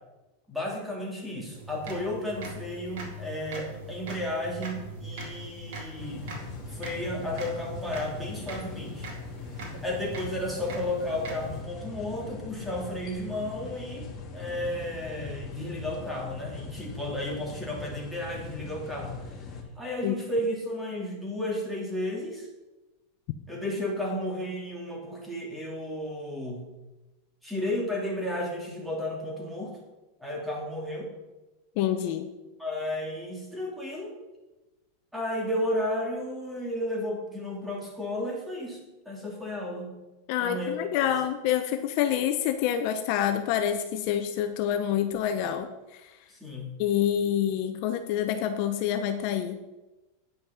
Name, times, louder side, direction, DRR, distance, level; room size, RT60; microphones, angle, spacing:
voice 1, 0.5-6.3 6.7-9.1 9.8-19.4 19.8-22.5 23.5-26.7 27.4-29.7 30.2-31.1 32.6-34.1 35.1-38.8 39.1-40.0 40.4-41.1 46.3-46.7, left 1 dB, 5° right, -2 dB, 2.5 m, -33 dB
sound 1, 1.5-11.6, right 2 dB, 70° right, 2.4 m, -41 dB
sound 2, 6.0-19.6, left 4 dB, 30° left, 1.8 m, -41 dB
voice 2, 31.8-32.3 40.3-45.7 46.8-49.6, left 10 dB, 55° left, 8 dB, 0.7 m, -27 dB
9.3 x 5.6 x 5.7 m, 1.1 s
supercardioid pair, 130°, 0 cm